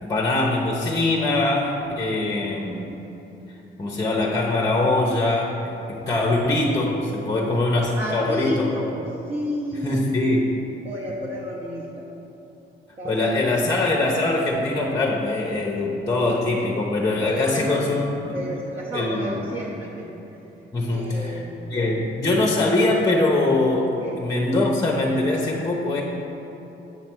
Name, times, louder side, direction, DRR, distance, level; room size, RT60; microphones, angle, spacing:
voice 1, 0.0-2.8 3.8-8.7 9.8-10.5 13.0-18.4 18.9-19.4 20.7-21.4 21.7-23.9 24.2-26.0, left 2 dB, 20° left, -1 dB, 0.7 m, -22 dB
voice 2, 7.9-10.1 10.8-12.1 13.0-13.6 17.2-17.8 18.3-20.1 20.9-21.9 24.0-24.2, equal, 35° right, -5 dB, 0.9 m, -31 dB
7.5 x 3.2 x 6.0 m, 3.0 s
cardioid pair, 90°, 20 cm